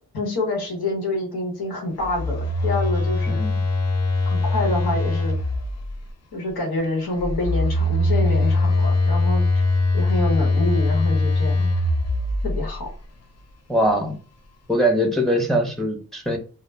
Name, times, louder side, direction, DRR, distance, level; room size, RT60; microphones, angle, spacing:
voice 1, 0.1-3.4 4.3-5.3 6.3-9.6 9.9-11.7 12.4-12.9, left 2 dB, 80° left, -1 dB, 1.0 m, -27 dB
Telephone, 2.0-6.0 7.2-12.9, left 2 dB, 45° left, 0.5 m, -22 dB
voice 2, 3.3-3.6 13.7-14.2 14.7-16.4, equal, ahead, 2 dB, 0.7 m, -22 dB
2.2 x 2.1 x 3.3 m, 0.36 s
cardioid pair, 70°, 37 cm